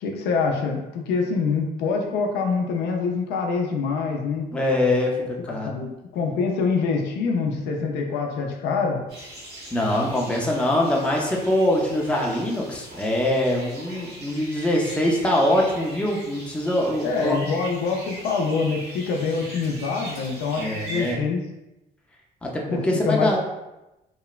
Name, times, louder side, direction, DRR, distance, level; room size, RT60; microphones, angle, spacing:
voice 1, 0.0-4.5 5.5-9.0 17.0-21.4 22.7-23.4, left 4 dB, 80° left, 2 dB, 0.4 m, -25 dB
voice 2, 4.5-5.7 9.7-17.4 20.6-21.2 22.4-23.4, left 1 dB, 5° left, -2 dB, 0.5 m, -23 dB
sound 1, 9.1-21.1, right 1 dB, 75° right, 1.3 m, -40 dB
3.0 x 2.0 x 2.3 m, 0.96 s
cardioid pair, 110°, 17 cm